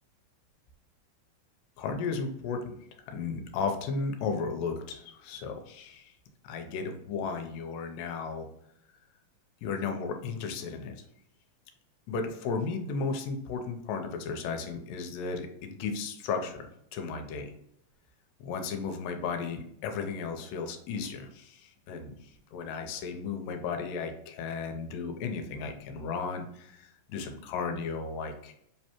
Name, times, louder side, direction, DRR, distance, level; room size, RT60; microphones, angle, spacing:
voice 1, 1.8-6.1 6.4-8.5 9.6-11.0 12.1-17.5 18.4-28.5, left 5 dB, 85° left, 5 dB, 2.3 m, -35 dB
4.8 x 3.2 x 2.9 m, 0.73 s
omnidirectional pair, 3.9 m